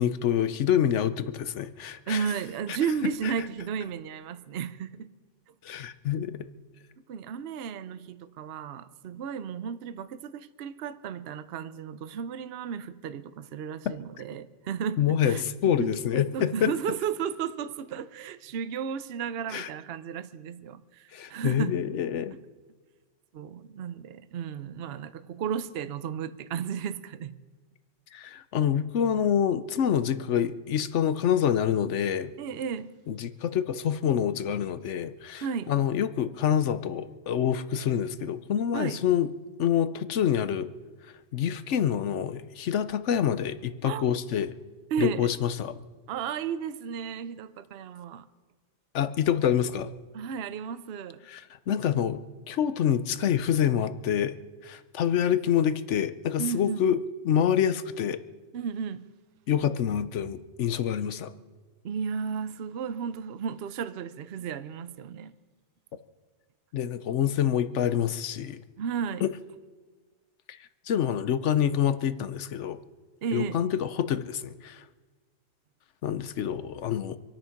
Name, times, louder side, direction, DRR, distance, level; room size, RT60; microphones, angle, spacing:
voice 1, 0.0-2.3 5.6-6.4 15.0-16.7 19.5-19.7 21.1-22.4 28.1-32.3 33.1-39.3 39.6-40.7 41.3-44.5 45.0-45.8 48.9-49.9 51.3-51.4 51.7-52.2 52.5-54.3 54.6-57.0 57.2-58.2 59.5-61.3 66.7-68.6 69.2-69.3 70.9-72.8 73.3-74.8 76.0-77.2, left 9 dB, 65° left, 1.0 m, -26 dB
voice 2, 2.1-5.1 7.1-21.8 23.3-27.4 32.4-32.9 35.4-35.7 38.7-39.0 43.8-44.1 44.9-45.3 46.1-48.3 50.1-51.2 56.4-56.9 58.5-59.1 61.8-65.3 68.8-69.3 73.2-73.6, right 7 dB, 60° right, 0.8 m, -34 dB
26.0 x 9.0 x 5.8 m
omnidirectional pair, 1.3 m